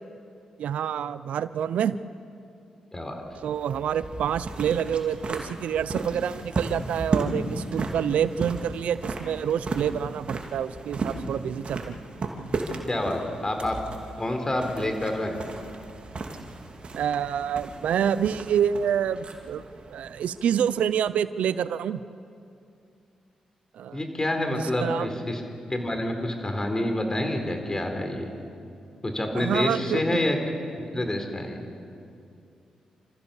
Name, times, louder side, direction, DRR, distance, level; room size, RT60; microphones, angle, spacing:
voice 1, 0.6-2.0 3.4-11.9 16.9-19.6 19.9-22.0 23.7-24.0 24.6-25.1 29.3-30.0, right 8 dB, 80° right, 15 dB, 0.5 m, -27 dB
voice 2, 2.9-3.2 12.9-13.8 14.2-15.5 23.9-25.4 25.7-28.3 29.0-30.4 30.9-31.6, left 1 dB, 30° left, 4 dB, 4.1 m, -27 dB
sound 1, 3.2-20.9, right 3 dB, 55° right, 2.7 m, -35 dB
28.0 x 14.5 x 7.1 m, 2.5 s
supercardioid pair, 50°, 2 cm